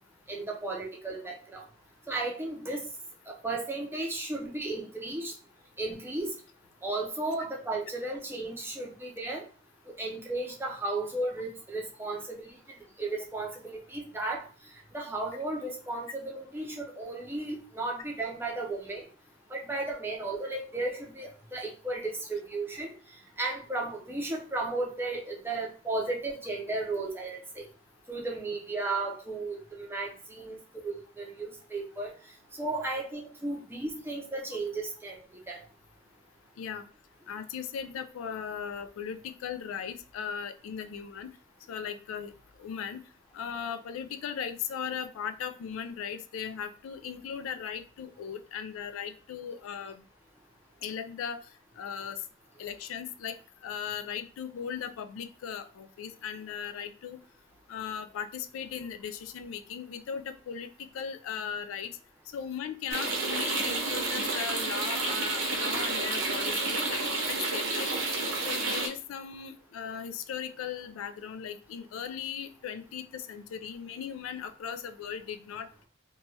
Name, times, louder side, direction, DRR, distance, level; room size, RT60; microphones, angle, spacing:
voice 1, 0.3-1.6 2.1-2.9 3.3-5.3 5.8-6.4 6.8-9.4 10.0-12.5 13.0-14.4 14.9-19.1 19.5-22.9 23.4-27.7 28.1-30.6 30.8-32.1 32.6-35.2 35.5-35.6, right 2 dB, 10° right, -1 dB, 0.5 m, -34 dB
voice 2, 37.3-41.3 41.7-42.3 42.6-43.0 43.3-50.0 50.8-51.4 51.8-52.2 52.6-53.4 53.6-57.2 57.7-61.9 62.3-67.9 68.4-75.9, left 7 dB, 80° left, 9 dB, 0.3 m, -38 dB
sound 1, 62.9-68.9, right 3 dB, 75° right, 0.7 m, -30 dB
3.0 x 2.3 x 2.7 m, 0.38 s
head